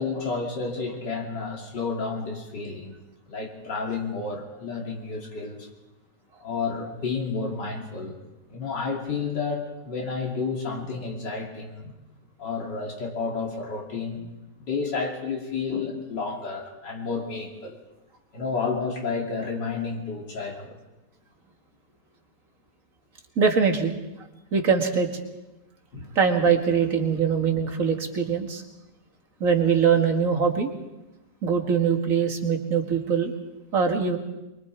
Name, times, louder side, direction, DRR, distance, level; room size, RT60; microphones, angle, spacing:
voice 1, 0.0-2.9 3.3-5.7 6.4-8.2 8.5-11.9 12.4-14.3 14.6-17.8 18.3-20.8 25.9-26.1, left 4 dB, 90° left, 0 dB, 3.4 m, -31 dB
voice 2, 23.4-23.9 24.5-25.1 26.2-28.6 29.4-30.7 31.4-33.3 33.7-34.2, right 6 dB, 50° right, 3 dB, 2.3 m, -22 dB
23.5 x 23.5 x 4.7 m, 1.0 s
omnidirectional pair, 1.8 m